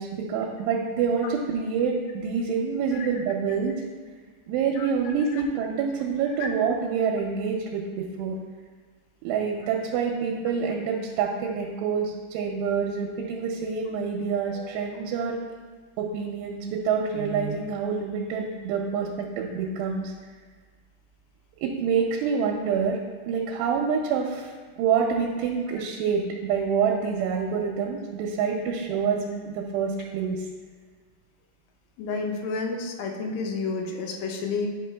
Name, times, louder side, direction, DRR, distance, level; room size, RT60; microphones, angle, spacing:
voice 1, 0.0-3.8 4.5-8.4 9.2-15.4 16.0-20.1 21.6-23.0 23.2-24.5 24.8-30.5, right 6 dB, 85° right, 0 dB, 2.7 m, -27 dB
voice 2, 32.0-34.7, left 4 dB, 80° left, 2 dB, 2.5 m, -30 dB
9.2 x 5.4 x 2.2 m, 1.5 s
omnidirectional pair, 4.8 m